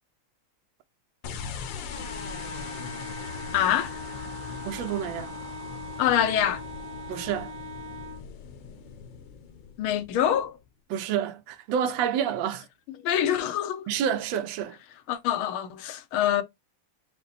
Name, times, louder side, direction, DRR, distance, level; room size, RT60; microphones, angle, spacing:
sound 1, 1.2-10.6, left 6 dB, 70° left, 1.4 m, -40 dB
Wind instrument woodwind instrument, 1.9-8.3, equal, 30° left, 0.6 m, -40 dB
voice 1, 3.5-3.9 6.0-6.6 9.8-10.6 13.0-13.8 15.1-16.4, left 10 dB, 85° left, 1.6 m, -25 dB
voice 2, 4.6-5.3 7.1-7.5 10.9-12.6 13.9-14.8, right 9 dB, 70° right, 1.4 m, -28 dB
5.3 x 2.2 x 4.0 m
omnidirectional pair, 2.3 m